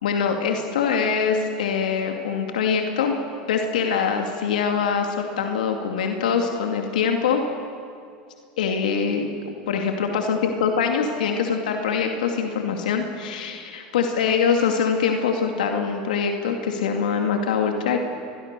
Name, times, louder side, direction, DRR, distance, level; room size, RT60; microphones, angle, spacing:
voice 1, 0.0-3.2 3.5-7.4 8.6-18.0, left 6 dB, 85° left, 3 dB, 2.3 m, -23 dB
29.5 x 22.0 x 6.8 m, 2.4 s
hypercardioid pair, 100°, 4 cm